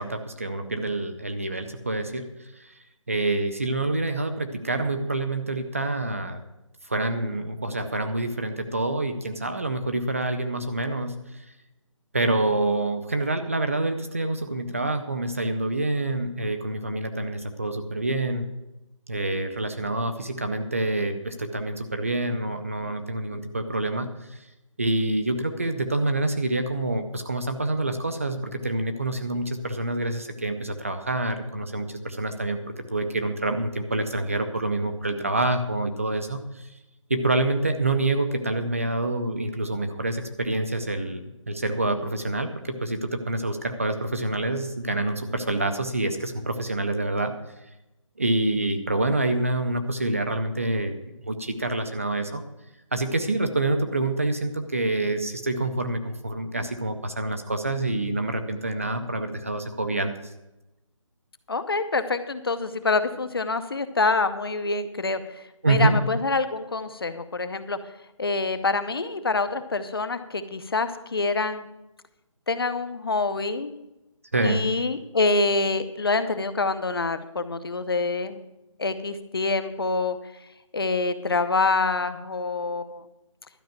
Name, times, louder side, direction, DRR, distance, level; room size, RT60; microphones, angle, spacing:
voice 1, 0.0-2.7 3.1-6.4 6.9-11.1 12.1-18.5 19.1-24.4 24.8-32.6 32.9-36.7 37.1-41.2 41.5-47.3 48.2-50.9 51.2-52.4 52.9-60.1 65.6-66.0 74.3-74.6, right 2 dB, 25° right, 7 dB, 0.6 m, -27 dB
voice 2, 61.5-67.8 68.2-71.7 72.5-73.7 74.4-78.4 78.8-80.2 80.7-83.1, left 3 dB, 45° left, 11 dB, 0.8 m, -26 dB
12.0 x 5.5 x 8.9 m, 0.93 s
hypercardioid pair, 175°, 17 cm